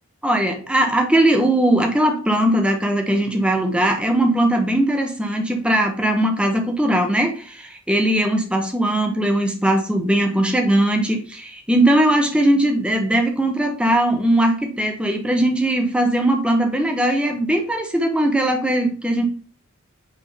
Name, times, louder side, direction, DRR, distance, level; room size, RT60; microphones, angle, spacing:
voice 1, 0.2-19.2, right 1 dB, 5° right, 3 dB, 1.0 m, -19 dB
5.4 x 3.6 x 5.0 m, 0.41 s
head